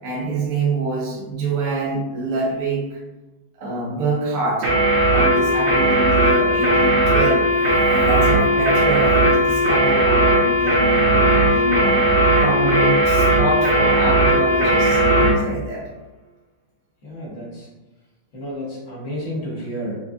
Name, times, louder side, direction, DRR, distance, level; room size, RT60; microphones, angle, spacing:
voice 1, 0.0-3.0 3.6-4.7 5.1-12.0 12.4-15.8, right 2 dB, 55° right, -6 dB, 1.1 m, -26 dB
sound 1, 4.6-15.4, right 1 dB, 80° right, 2.0 m, -17 dB
voice 2, 17.0-17.7 18.3-20.0, equal, 45° left, -6 dB, 1.3 m, -31 dB
4.8 x 2.2 x 2.5 m, 1.1 s
omnidirectional pair, 2.3 m